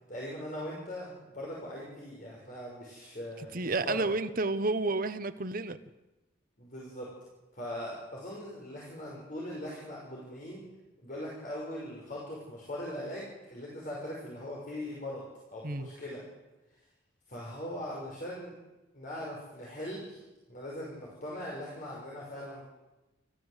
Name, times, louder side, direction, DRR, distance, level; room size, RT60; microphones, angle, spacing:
voice 1, 0.1-4.1 6.6-7.1 7.5-10.7 11.0-15.2 15.5-16.2 17.3-18.6 18.9-20.2 20.5-22.6, left 1 dB, 45° left, 5.9 m, -40 dB
voice 2, 3.4-5.8 15.6-15.9, right 3 dB, 45° right, 1.1 m, -31 dB
30.0 x 15.0 x 8.2 m
head